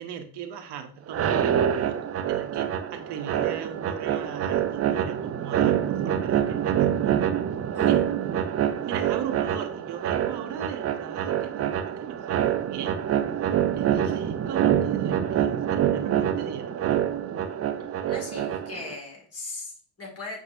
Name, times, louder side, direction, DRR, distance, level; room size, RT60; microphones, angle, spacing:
voice 1, 0.0-7.3 7.9-8.0 8.8-13.0 13.7-17.0, right 8 dB, 60° right, 8 dB, 0.8 m, -38 dB
sound 1, 1.1-18.9, right 10 dB, 35° right, 0.4 m, -26 dB
voice 2, 18.1-20.4, left 3 dB, 30° left, 0 dB, 1.9 m, -38 dB
5.7 x 2.6 x 2.5 m, 0.43 s
hypercardioid pair, 50°, 46 cm